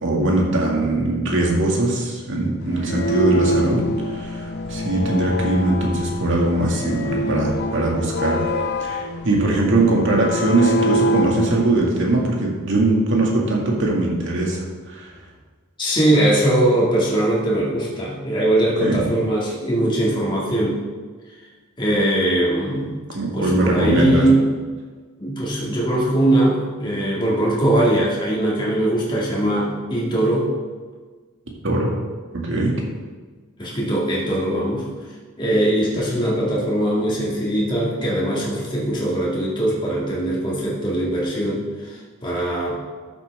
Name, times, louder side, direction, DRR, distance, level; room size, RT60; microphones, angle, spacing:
voice 1, 0.0-3.8 4.1-8.5 8.8-15.1 18.8-19.0 23.1-24.2 31.6-31.9 32.3-32.7, right 2 dB, 60° right, -1 dB, 2.1 m, -21 dB
sound 1, 2.7-11.7, equal, 50° left, 0.6 m, -25 dB
voice 2, 15.8-20.8 21.3-21.4 21.8-23.0 23.3-24.4 25.2-30.5 33.6-34.9 35.4-42.7, right 1 dB, 20° left, -6 dB, 2.0 m, -21 dB
12.0 x 7.4 x 3.5 m, 1.4 s
head